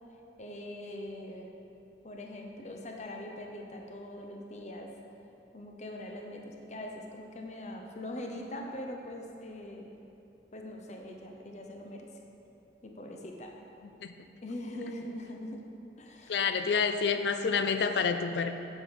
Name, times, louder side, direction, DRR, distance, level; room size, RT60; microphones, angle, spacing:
voice 1, 0.4-1.5 2.0-4.9 5.5-9.9 10.5-12.1 12.8-13.5 14.4-15.6 16.0-16.3, left 1 dB, 40° left, 1 dB, 0.8 m, -42 dB
voice 2, 16.3-18.5, left 5 dB, 80° left, 8 dB, 0.5 m, -28 dB
7.4 x 6.2 x 5.2 m, 2.8 s
head